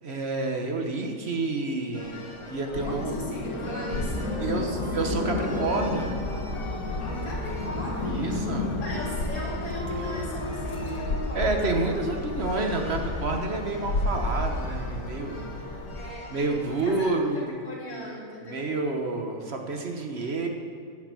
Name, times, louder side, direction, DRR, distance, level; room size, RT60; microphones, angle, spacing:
voice 1, 0.0-2.2 2.5-3.2 4.4-6.2 8.1-8.7 11.3-15.5 16.3-17.5 18.4-20.5, right 3 dB, 45° right, 3 dB, 1.3 m, -29 dB
sound 1, 1.9-17.0, left 2 dB, 20° left, 1.1 m, -41 dB
sound 2, 2.7-16.1, left 2 dB, 85° left, 1.9 m, -31 dB
voice 2, 2.8-5.2 7.0-11.6 15.9-18.7, left 1 dB, 60° left, -5 dB, 4.0 m, -38 dB
11.5 x 7.2 x 8.3 m, 2.3 s
omnidirectional pair, 1.7 m